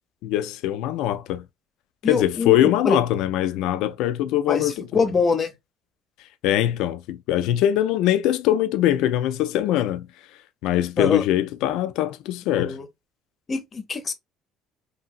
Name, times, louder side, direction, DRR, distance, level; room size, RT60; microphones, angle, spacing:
voice 1, 0.2-1.5 2.1-5.0 6.4-10.1 10.6-12.8, left 12 dB, 75° left, 0.3 m, -22 dB
voice 2, 2.0-3.0 4.5-5.5 11.0-11.2 12.5-12.9 13.5-14.1, left 4 dB, 35° left, 0.7 m, -24 dB
2.8 x 2.7 x 2.4 m
supercardioid pair, 90°, 0 cm